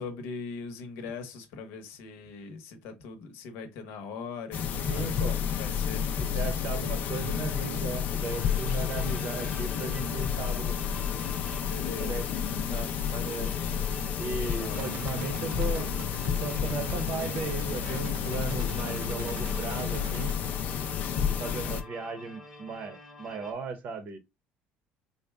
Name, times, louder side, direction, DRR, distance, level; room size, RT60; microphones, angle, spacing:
voice 1, 0.0-6.1 11.6-12.3 14.6-15.0, left 5 dB, 70° left, 0.9 m, -41 dB
sound 1, 4.5-21.8, left 8 dB, 45° left, 0.4 m, -31 dB
voice 2, 4.9-5.4 6.3-10.8 12.0-12.3 12.7-13.5 14.2-15.9 16.4-20.4 21.3-24.2, right 4 dB, 40° right, 0.8 m, -36 dB
sound 2, 8.2-23.5, left 2 dB, 5° left, 0.9 m, -47 dB
sound 3, 14.7-20.3, right 10 dB, 80° right, 0.4 m, -43 dB
3.9 x 2.2 x 3.4 m
cardioid pair, 165°, 4 cm